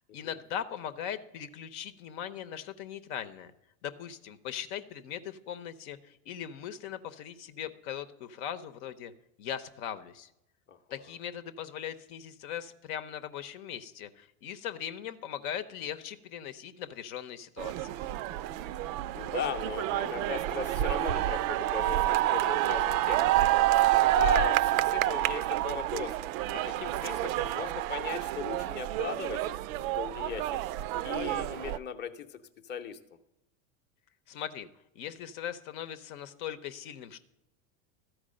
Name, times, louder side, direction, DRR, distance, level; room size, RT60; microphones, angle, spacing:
voice 1, 0.1-3.5 3.8-9.1 9.4-10.3 10.9-18.0 34.3-34.7 34.9-37.2, left 9 dB, 65° left, 10 dB, 0.8 m, -39 dB
sound 1, 17.6-31.8, right 14 dB, 65° right, 0.5 m, -28 dB
voice 2, 19.1-26.2 26.5-29.4 29.9-30.6 31.0-33.0, left 7 dB, 25° left, 3 dB, 0.7 m, -38 dB
13.0 x 4.7 x 7.5 m, 0.88 s
supercardioid pair, 110°, 45 cm